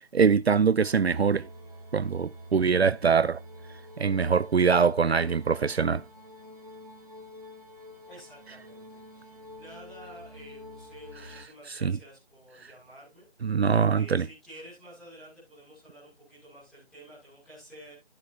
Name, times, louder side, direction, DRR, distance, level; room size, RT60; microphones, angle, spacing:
voice 1, 0.1-1.4 1.9-3.4 4.0-6.0 11.7-12.0 13.4-14.3, right 6 dB, 75° right, 0.6 m, -23 dB
sound 1, 0.8-11.4, left 1 dB, 35° right, 2.6 m, -47 dB
voice 2, 8.1-13.6 13.9-17.9, right 1 dB, ahead, 2.6 m, -51 dB
15.5 x 5.7 x 2.7 m
figure-of-eight pair, 175°, 32 cm